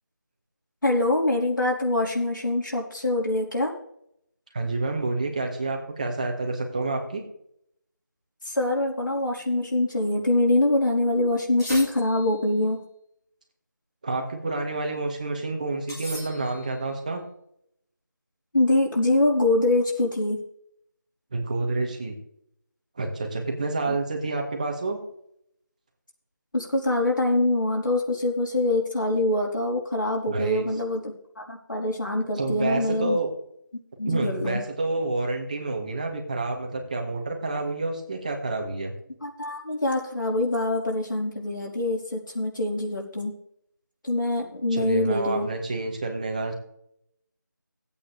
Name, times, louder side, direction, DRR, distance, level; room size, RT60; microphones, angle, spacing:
voice 1, 0.8-3.7 8.5-12.8 18.5-20.4 23.9-24.0 26.5-33.2 34.0-34.6 39.2-43.3 44.0-45.5, left 2 dB, 75° left, -2 dB, 4.1 m, -24 dB
voice 2, 4.5-7.2 14.0-17.2 21.3-22.1 23.0-25.0 30.3-30.6 32.4-33.3 34.0-38.9 44.7-46.5, right 2 dB, 25° right, 3 dB, 1.6 m, -28 dB
sound 1, 11.6-12.5 15.9-16.8, equal, 10° left, 2.0 m, -39 dB
16.0 x 8.6 x 3.3 m, 0.73 s
figure-of-eight pair, 170°, 10 cm